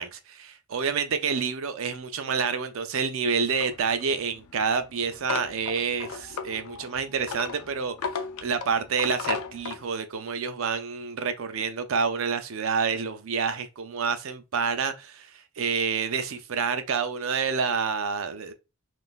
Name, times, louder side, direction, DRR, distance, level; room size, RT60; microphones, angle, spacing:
voice 1, 0.0-7.9 8.4-15.3 15.6-18.5, right 5 dB, 65° right, 0.5 m, -28 dB
sound 1, 3.6-9.8, left 5 dB, 85° left, 0.4 m, -36 dB
3.7 x 2.5 x 2.4 m
head